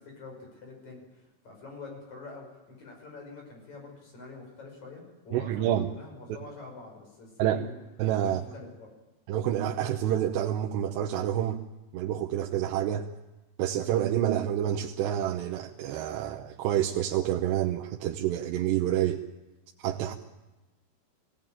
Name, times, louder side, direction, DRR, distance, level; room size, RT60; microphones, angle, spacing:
voice 1, 0.0-7.8 8.2-8.9, left 3 dB, 45° left, 1 dB, 7.0 m, -46 dB
voice 2, 5.3-5.9 7.4-7.6 8.0-8.4 9.3-11.6 11.9-13.1 13.6-19.2 19.8-20.1, right 11 dB, 85° right, 1 dB, 3.1 m, -28 dB
22.0 x 17.0 x 9.1 m, 1.1 s
omnidirectional pair, 4.8 m